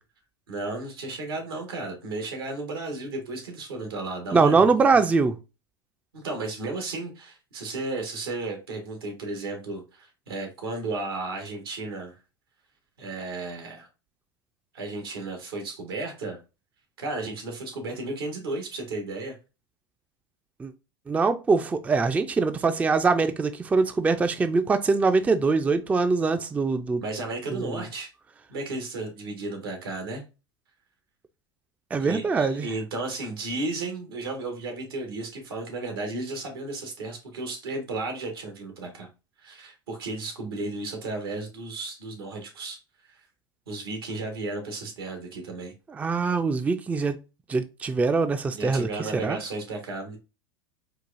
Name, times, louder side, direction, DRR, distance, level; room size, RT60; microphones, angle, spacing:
voice 1, 0.5-4.7 6.1-12.1 13.0-13.9 14.7-16.4 17.0-19.4 27.0-28.1 28.5-30.2 32.0-39.1 39.4-42.8 43.0-43.2 43.7-45.7 48.5-50.2, right 2 dB, 90° right, 1.5 m, -34 dB
voice 2, 4.3-5.4 20.6-20.7 21.1-27.0 27.5-27.8 31.9-32.7 45.9-47.2 47.5-49.4, right 4 dB, 10° right, 0.3 m, -23 dB
4.6 x 2.3 x 2.5 m
hypercardioid pair, 105°, 12 cm